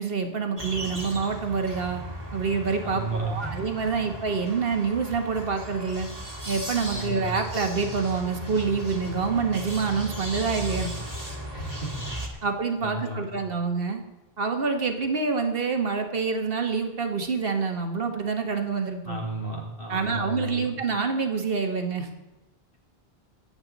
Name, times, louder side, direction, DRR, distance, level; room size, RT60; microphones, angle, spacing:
voice 1, 0.0-2.0 2.3-6.1 6.5-10.9 12.4-14.0 14.4-19.2 19.9-22.1, right 5 dB, 65° right, 5 dB, 1.5 m, -27 dB
sound 1, 0.6-12.3, right 1 dB, 40° right, 1.9 m, -37 dB
voice 2, 2.8-3.6 6.9-7.2 11.5-12.0 12.3-12.4 12.8-13.2 19.0-20.7, right 1 dB, 60° left, -2 dB, 3.4 m, -33 dB
22.5 x 8.0 x 4.0 m, 1.0 s
omnidirectional pair, 1.0 m